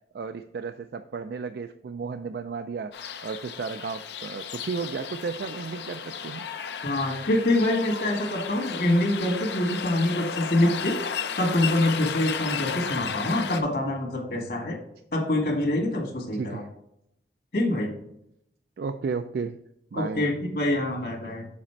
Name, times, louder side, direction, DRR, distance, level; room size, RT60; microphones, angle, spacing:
voice 1, 0.1-6.4 16.3-16.7 18.8-19.6 19.9-20.3, right 5 dB, 60° right, 9 dB, 0.3 m, -33 dB
sound 1, 2.9-13.6, left 6 dB, 75° left, 0.6 m, -34 dB
voice 2, 6.8-14.8 15.1-16.6 17.5-17.9 19.9-21.5, left 1 dB, 60° left, 2 dB, 1.8 m, -25 dB
7.4 x 4.2 x 4.4 m, 0.76 s
head